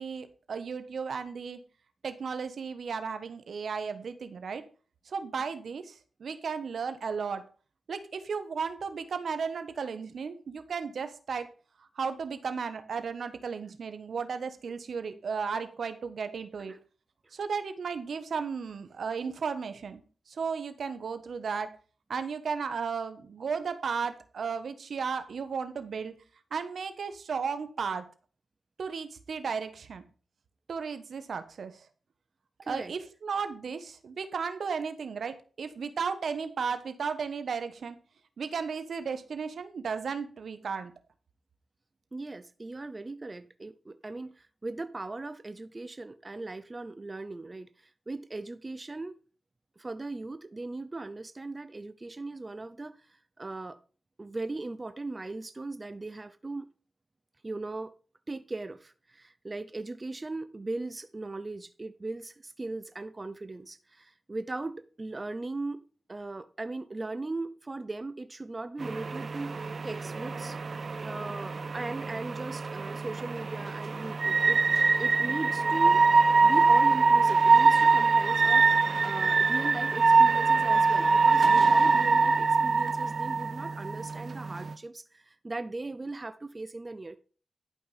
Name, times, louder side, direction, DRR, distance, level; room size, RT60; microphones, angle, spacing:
voice 1, 0.0-1.6 2.0-4.6 5.1-7.4 7.9-11.5 11.9-16.7 17.3-20.0 20.3-21.7 22.1-26.1 26.5-28.0 28.8-30.0 30.7-31.9 32.7-38.0 38.4-40.9, right 5 dB, 75° right, 1.4 m, -34 dB
voice 2, 32.6-32.9 42.1-49.2 49.8-53.8 54.2-56.7 57.4-57.9 58.3-65.8 66.1-70.6 71.0-76.0 76.4-87.2, right 2 dB, 35° right, 0.9 m, -38 dB
sound 1, 68.8-84.7, right 4 dB, 60° right, 0.9 m, -24 dB
12.0 x 5.5 x 5.5 m
cardioid pair, 50°, 0 cm